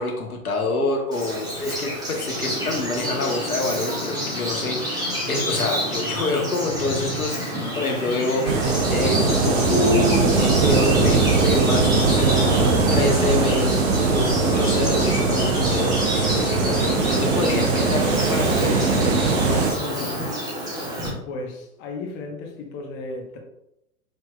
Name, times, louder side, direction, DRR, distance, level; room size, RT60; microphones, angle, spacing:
voice 1, 0.0-8.6 8.9-20.2, left 2 dB, 80° left, 2 dB, 1.0 m, -27 dB
Bird vocalization bird call bird song, 1.1-21.1, equal, 10° right, 1.4 m, -30 dB
sound 1, 2.3-20.3, left 1 dB, 10° left, 0.4 m, -34 dB
sound 2, 8.4-19.7, right 4 dB, 50° right, 0.8 m, -20 dB
voice 2, 21.2-23.4, left 2 dB, 25° left, 2 dB, 0.9 m, -34 dB
5.0 x 4.5 x 2.2 m, 0.83 s
figure-of-eight pair, 105°, 43 cm